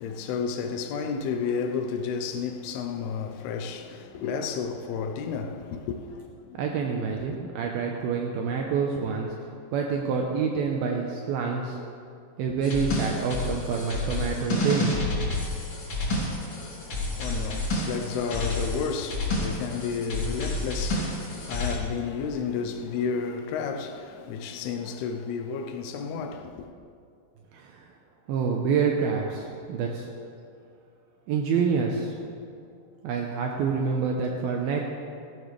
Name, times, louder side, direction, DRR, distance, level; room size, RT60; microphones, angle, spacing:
voice 1, 0.0-6.6 7.2-7.4 16.3-26.7, left 6 dB, 80° left, 2.3 m, -32 dB
voice 2, 6.6-9.3 9.7-11.8 12.4-15.0 27.5-27.8 28.3-30.1 31.3-32.2 33.0-34.8, right 5 dB, 85° right, 2.2 m, -27 dB
sound 1, 12.6-21.7, left 2 dB, 35° left, 2.7 m, -30 dB
16.5 x 14.0 x 3.3 m
omnidirectional pair, 5.4 m